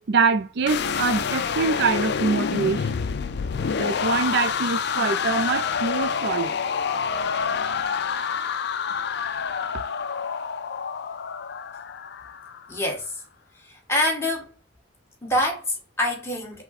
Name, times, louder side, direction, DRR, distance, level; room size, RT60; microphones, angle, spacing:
voice 1, 0.1-3.0 3.8-6.6, right 4 dB, 60° right, 0.4 m, -24 dB
sound 1, 0.7-12.7, left 6 dB, 60° left, 0.4 m, -27 dB
voice 2, 12.7-13.2 13.6-14.5 15.2-16.6, left 1 dB, 15° left, 1.6 m, -26 dB
5.8 x 2.2 x 4.1 m
head